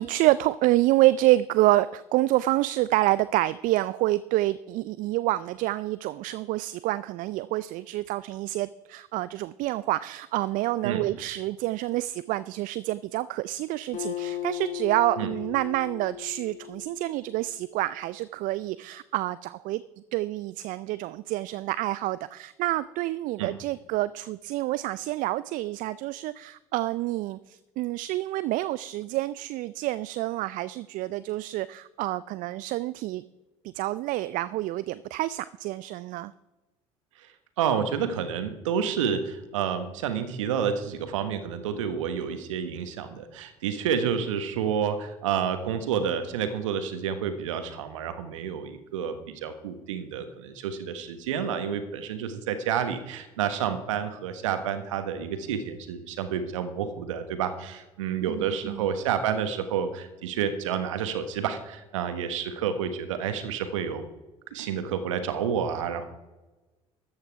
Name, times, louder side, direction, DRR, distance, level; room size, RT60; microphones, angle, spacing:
voice 1, 0.0-19.8 20.1-33.2 33.7-36.3 58.3-58.9, right 17 dB, 55° right, 17 dB, 0.4 m, -27 dB
Acoustic guitar, 13.9-17.5, left 14 dB, 50° left, 2.8 m, -37 dB
voice 2, 37.6-49.2 49.4-64.0 64.5-66.1, right 7 dB, 80° right, 10 dB, 1.2 m, -29 dB
13.5 x 8.8 x 4.7 m, 1.1 s
hypercardioid pair, 60°, 16 cm